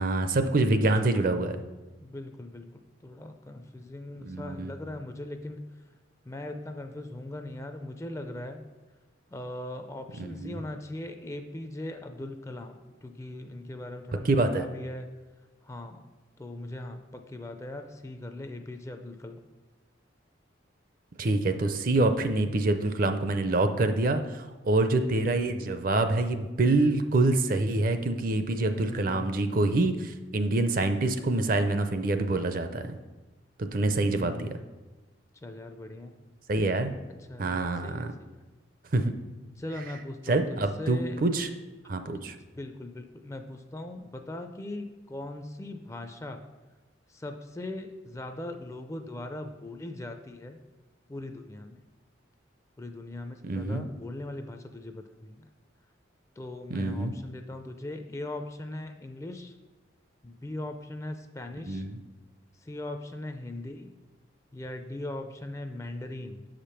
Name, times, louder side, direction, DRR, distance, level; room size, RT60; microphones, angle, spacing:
voice 1, 0.0-1.6 4.2-4.7 10.2-10.6 14.2-14.7 21.2-33.0 33.6-34.5 36.5-36.9 37.4-38.1 38.9-39.1 40.3-41.5 41.9-42.3 53.4-53.8 56.7-57.1 61.6-62.0, right 2 dB, 45° right, 8 dB, 0.5 m, -26 dB
voice 2, 1.1-1.4 2.0-5.6 6.2-8.7 9.3-15.1 15.6-16.0 16.4-19.4 28.7-29.6 33.9-34.7 35.4-36.2 37.3-38.3 39.6-41.2 42.2-46.4 47.1-50.6 51.1-51.8 52.8-55.5 56.4-59.5 60.2-61.8 62.6-63.9 64.5-66.5, left 1 dB, 15° left, 6 dB, 0.4 m, -40 dB
7.0 x 5.1 x 5.7 m, 1.2 s
head